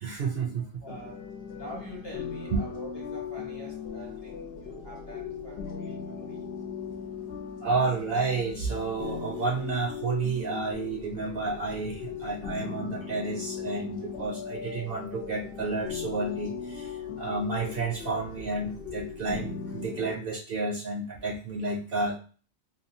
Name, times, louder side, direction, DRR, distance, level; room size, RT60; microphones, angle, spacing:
voice 1, 0.0-1.0 2.5-2.6 7.6-22.2, right 3 dB, 65° right, 0.7 m, -31 dB
voice 2, 0.8-6.5, equal, 25° left, 0.8 m, -45 dB
sound 1, 0.9-20.1, left 6 dB, 80° left, 0.9 m, -38 dB
2.9 x 2.3 x 2.5 m
omnidirectional pair, 1.1 m